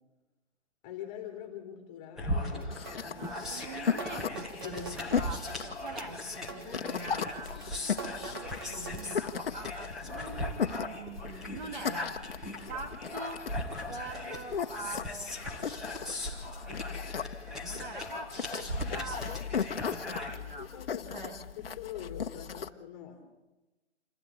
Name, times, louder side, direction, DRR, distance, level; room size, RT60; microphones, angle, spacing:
voice 1, 0.8-2.8 4.6-5.3 5.6-5.8 7.5-7.7 8.1-8.3 20.7-23.3, left 10 dB, 15° left, 3 dB, 2.8 m, -44 dB
sound 1, 2.2-20.4, left 1 dB, ahead, 1.1 m, -39 dB
sound 2, 2.5-9.1, right 5 dB, 20° right, 0.8 m, -46 dB
sound 3, 2.7-22.7, left 7 dB, 55° left, 1.1 m, -37 dB
voice 2, 3.1-7.5 8.1-12.2 12.7-13.5 13.9-16.3 16.6-19.5 19.8-20.7 21.1-21.7, right 3 dB, 40° right, 4 dB, 2.5 m, -44 dB
28.0 x 12.0 x 8.4 m, 1.1 s
hypercardioid pair, 170°, 36 cm